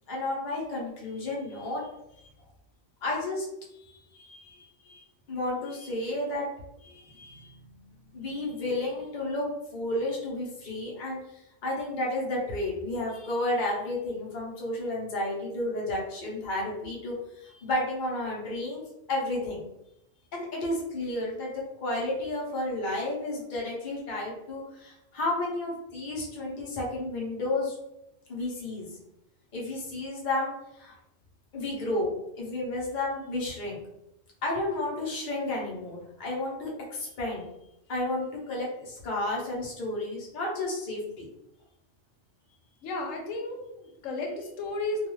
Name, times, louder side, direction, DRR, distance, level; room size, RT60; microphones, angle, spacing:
voice 1, 0.1-1.9 3.0-3.5 4.2-6.5 6.8-9.5 9.7-18.8 19.1-19.7 20.3-27.8 28.3-28.9 29.5-30.9 31.5-33.8 34.4-37.4 37.9-41.3, left 2 dB, 45° left, -4 dB, 0.9 m, -32 dB
voice 2, 42.8-45.1, left 2 dB, 85° left, 2 dB, 1.0 m, -33 dB
2.4 x 2.3 x 3.0 m, 0.85 s
omnidirectional pair, 1.3 m